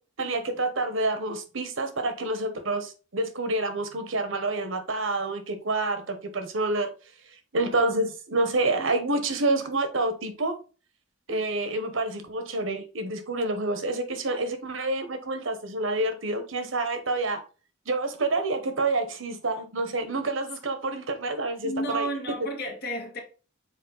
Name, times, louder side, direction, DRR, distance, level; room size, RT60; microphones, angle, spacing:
voice 1, 0.2-6.9 7.5-10.6 11.3-17.4 17.9-22.1, right 2 dB, 80° right, 1.1 m, -28 dB
voice 2, 21.6-23.2, right 1 dB, 55° left, 2.2 m, -31 dB
6.5 x 4.3 x 4.0 m
head